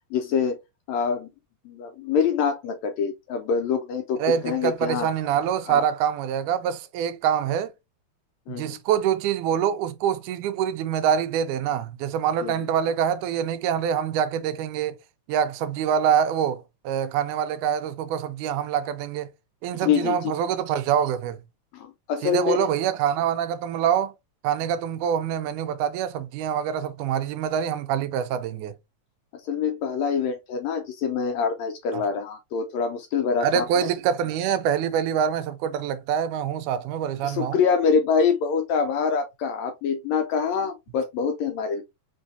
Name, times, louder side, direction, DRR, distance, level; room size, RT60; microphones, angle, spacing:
voice 1, 0.1-0.6 0.9-1.3 1.6-5.1 5.7-5.9 8.5-8.8 12.4-12.7 19.8-20.3 21.7-22.6 29.4-33.9 37.2-41.8, left 6 dB, 80° left, 1.6 m, -25 dB
voice 2, 4.2-7.7 8.6-15.0 15.3-19.3 19.6-21.4 22.2-24.1 24.4-28.7 31.9-32.0 33.4-37.6, right 8 dB, 80° right, 2.0 m, -25 dB
5.4 x 3.1 x 2.6 m
omnidirectional pair, 3.6 m